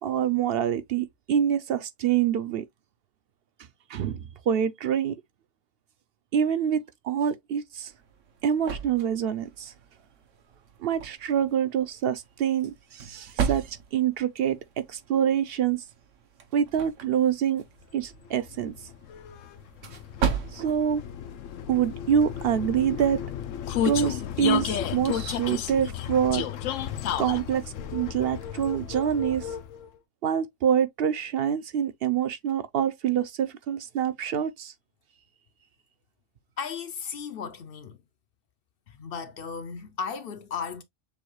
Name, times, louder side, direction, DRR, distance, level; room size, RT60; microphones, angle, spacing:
voice 1, 0.0-2.6 3.9-5.1 6.3-7.9 8.4-9.7 10.8-14.6 14.9-15.8 16.5-17.6 17.9-18.7 20.5-21.0 21.7-23.2 23.8-26.4 27.2-27.6 27.9-29.5 30.2-34.7, right 9 dB, 60° right, 0.7 m, -26 dB
sound 1, 7.7-22.3, right 7 dB, 80° right, 1.2 m, -37 dB
Vehicle, 18.0-29.9, left 9 dB, 85° left, 1.0 m, -33 dB
voice 2, 36.6-38.0 38.9-40.8, left 6 dB, 60° left, 0.7 m, -35 dB
6.9 x 2.3 x 3.1 m
omnidirectional pair, 1.3 m